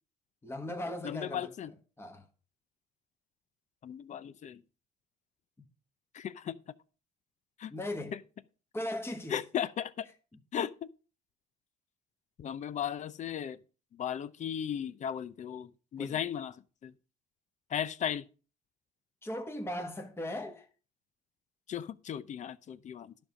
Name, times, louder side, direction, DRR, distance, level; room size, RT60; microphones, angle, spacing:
voice 1, 0.4-1.5 2.0-2.2 5.6-5.7 7.7-8.1 8.7-9.4 16.0-16.1 19.2-20.7, left 1 dB, 15° left, 1.5 m, -38 dB
voice 2, 1.0-1.7 3.8-4.6 6.1-6.6 7.6-7.7 8.1-8.2 9.3-10.1 10.5-10.9 12.4-13.6 13.9-16.9 17.7-18.2 21.7-23.1, left 9 dB, 45° left, 0.7 m, -36 dB
11.5 x 5.4 x 6.2 m
cardioid pair, 110°, 17 cm